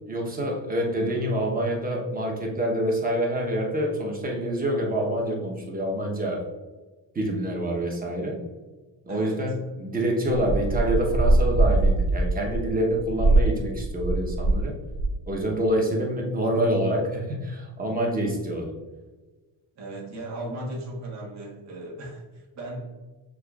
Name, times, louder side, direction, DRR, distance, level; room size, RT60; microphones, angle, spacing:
voice 1, 0.1-6.4 7.1-8.4 9.1-14.7 15.3-18.7, equal, 20° right, -1 dB, 1.0 m, -26 dB
voice 2, 9.1-9.5 19.8-22.2 22.6-22.9, right 1 dB, 40° right, -3 dB, 1.3 m, -36 dB
sound 1, 10.3-14.7 14.9-15.3, right 2 dB, 80° right, 0.9 m, -22 dB
6.4 x 3.1 x 2.4 m, 1.3 s
cardioid pair, 135°, 42 cm